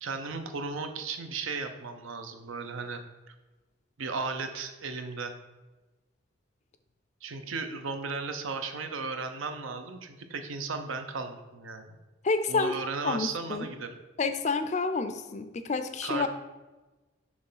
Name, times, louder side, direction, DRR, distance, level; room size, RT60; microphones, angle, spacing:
voice 1, 0.0-3.0 3.3-3.4 4.0-5.3 7.2-12.0 12.5-14.0 16.0-16.3, right 4 dB, 80° right, 7 dB, 0.6 m, -35 dB
voice 2, 12.2-12.8 13.0-13.7 14.2-16.3, left 4 dB, 35° left, 9 dB, 0.4 m, -29 dB
6.2 x 3.2 x 5.5 m, 1.2 s
head